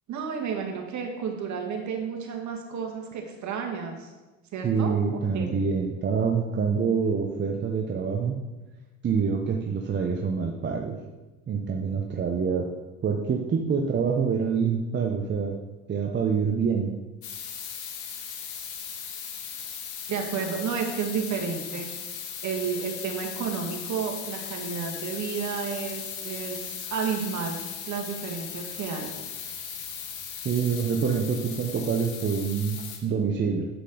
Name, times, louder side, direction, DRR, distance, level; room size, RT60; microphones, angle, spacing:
voice 1, 0.1-4.1 4.5-5.0 5.3-5.5 20.1-21.9 22.4-29.1, right 6 dB, 45° right, 1 dB, 2.0 m, -31 dB
voice 2, 4.6-8.4 9.0-11.0 11.5-12.7 13.0-15.6 15.9-16.9 30.4-33.7, right 6 dB, 30° right, 2 dB, 0.9 m, -26 dB
sound 1, 17.2-33.0, left 7 dB, 65° left, 1.6 m, -37 dB
8.2 x 7.9 x 4.0 m, 1.2 s
hypercardioid pair, 75°, 39 cm